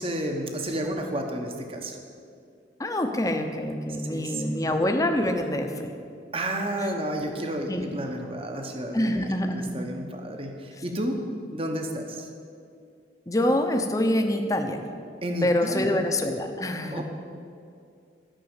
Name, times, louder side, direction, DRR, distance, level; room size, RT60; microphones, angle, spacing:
voice 1, 0.0-2.0 4.1-4.7 6.3-11.2 11.5-12.3 15.2-16.1 16.9-17.0, right 1 dB, 30° right, 3 dB, 1.1 m, -31 dB
voice 2, 2.8-5.9 7.7-8.0 8.9-9.7 13.3-14.8 15.4-17.0, left 1 dB, 20° left, 5 dB, 0.8 m, -26 dB
12.5 x 6.1 x 8.9 m, 2.4 s
head